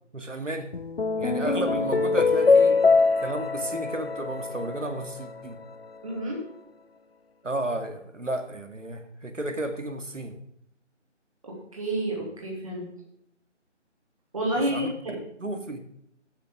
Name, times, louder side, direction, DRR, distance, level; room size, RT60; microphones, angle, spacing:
voice 1, 0.1-0.7 1.2-2.8 3.2-5.6 7.4-10.4 14.7-15.8, right 2 dB, 85° right, 7 dB, 2.2 m, -33 dB
sound 1, 0.7-5.3, left 4 dB, 55° left, 0.6 m, -23 dB
voice 2, 6.0-6.4 11.4-12.9 14.3-15.2, right 1 dB, 30° right, -2 dB, 2.9 m, -30 dB
16.5 x 8.2 x 3.7 m, 0.75 s
figure-of-eight pair, 165°, 36 cm